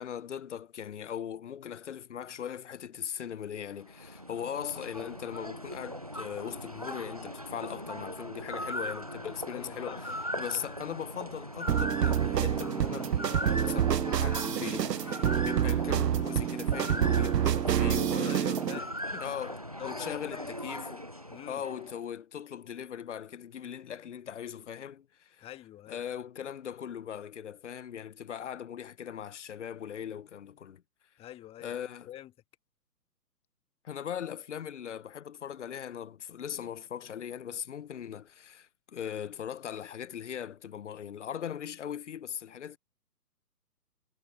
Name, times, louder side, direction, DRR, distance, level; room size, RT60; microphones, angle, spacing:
voice 1, 0.0-10.1 10.4-18.4 18.7-18.9 19.2-19.6 19.8-21.1 21.5-25.5 25.9-30.8 31.6-32.1 33.8-42.8, left 9 dB, 50° left, 0.6 m, -39 dB
sound 1, 3.7-22.1, equal, 25° right, 0.4 m, -39 dB
voice 2, 9.5-10.2 17.8-19.2 19.8-20.5 21.3-21.6 25.4-26.0 31.2-31.7 32.1-32.3, left 13 dB, 10° left, 1.5 m, -45 dB
sound 2, 11.7-18.8, right 9 dB, 80° right, 0.6 m, -28 dB
figure-of-eight pair, 135°, 48 cm